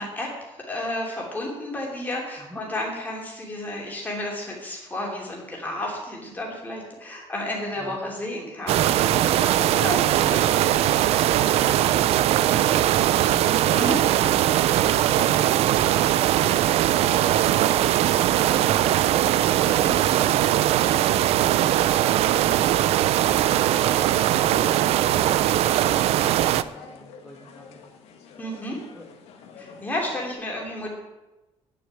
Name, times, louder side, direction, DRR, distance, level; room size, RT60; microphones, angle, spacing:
voice 1, 0.0-9.4 9.7-10.9 13.5-14.0 19.6-19.9 28.4-28.8 29.6-30.9, left 1 dB, 15° left, -2 dB, 2.8 m, -32 dB
voice 2, 7.7-8.1 28.5-29.0, equal, ahead, -3 dB, 1.4 m, -46 dB
sound 1, 8.7-26.6, right 12 dB, 70° right, 0.4 m, -20 dB
sound 2, 23.8-30.3, left 5 dB, 70° left, 1.5 m, -45 dB
9.7 x 6.7 x 9.0 m, 1.0 s
cardioid pair, 180°, 11 cm